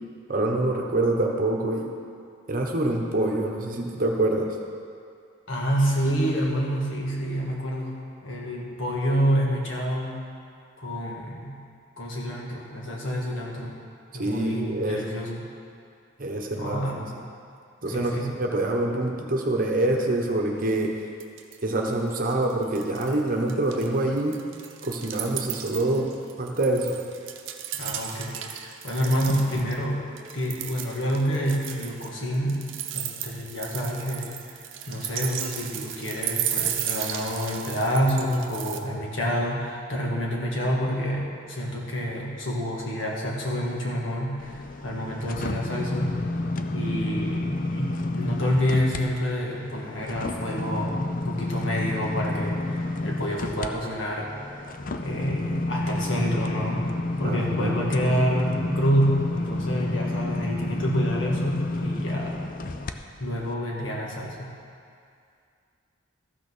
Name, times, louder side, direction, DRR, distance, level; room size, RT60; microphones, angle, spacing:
voice 1, 0.3-1.9 2.5-4.6 14.1-15.1 16.2-17.2 17.8-20.9 21.6-24.4 24.8-26.1 26.4-27.0 57.2-57.7, right 2 dB, 45° right, 1 dB, 1.1 m, -26 dB
voice 2, 5.5-10.2 10.8-11.6 12.0-13.7 14.1-15.5 16.6-17.1 17.9-18.3 27.7-30.1 30.3-34.3 34.9-46.2 46.7-54.3 55.0-56.9 57.2-62.4 63.2-64.5, equal, 65° left, -3 dB, 1.9 m, -28 dB
sound 1, 20.8-20.9 21.2-21.8 22.1-23.2 23.5-29.8 30.2-38.8, right 10 dB, 65° right, 0.8 m, -34 dB
sound 2, 44.4-49.0 49.4-62.9 63.4-63.5, left 2 dB, 40° left, 0.5 m, -30 dB
14.0 x 6.1 x 6.2 m, 2.3 s
head